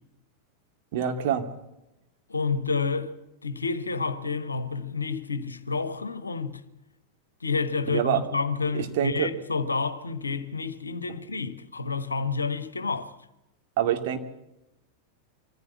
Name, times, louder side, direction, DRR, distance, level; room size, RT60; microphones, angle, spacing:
voice 1, 0.9-1.5 7.9-8.2 8.7-9.3 13.8-14.2, right 10 dB, 50° right, 2.3 m, -26 dB
voice 2, 2.3-3.1 3.4-6.6 7.4-13.1, left 4 dB, 80° left, 1.4 m, -29 dB
24.5 x 15.0 x 8.4 m
figure-of-eight pair, 90°, 0 cm